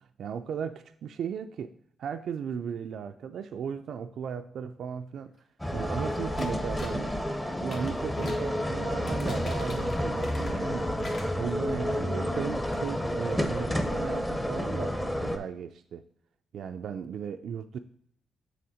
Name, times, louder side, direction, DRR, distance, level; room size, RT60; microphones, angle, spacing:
voice 1, 0.2-1.7 2.0-5.3 5.7-7.1 7.6-10.9 11.4-16.0 16.5-17.8, right 7 dB, 75° right, 8 dB, 0.3 m, -36 dB
sound 1, 5.6-15.4, left 1 dB, 10° left, 0.8 m, -30 dB
sound 2, 6.4-7.0 7.6-8.5 8.9-10.7 11.0-11.9 12.3-12.4 12.7-12.8, left 2 dB, 60° left, 1.3 m, -46 dB
7.0 x 3.4 x 4.9 m, 0.67 s
cardioid pair, 85°, 0 cm